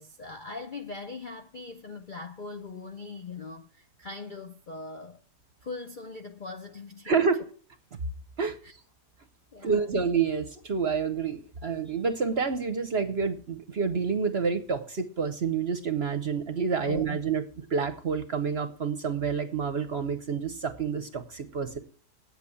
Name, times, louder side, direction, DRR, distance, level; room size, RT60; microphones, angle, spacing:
voice 1, 0.0-5.2 5.6-7.2 8.6-8.8 9.5-9.9 16.8-17.2, left 4 dB, 45° left, 0.6 m, -41 dB
voice 2, 7.0-7.4 8.4-8.6 9.6-17.4 17.7-21.8, right 5 dB, 45° right, 0.9 m, -28 dB
8.9 x 8.2 x 8.5 m
omnidirectional pair, 1.8 m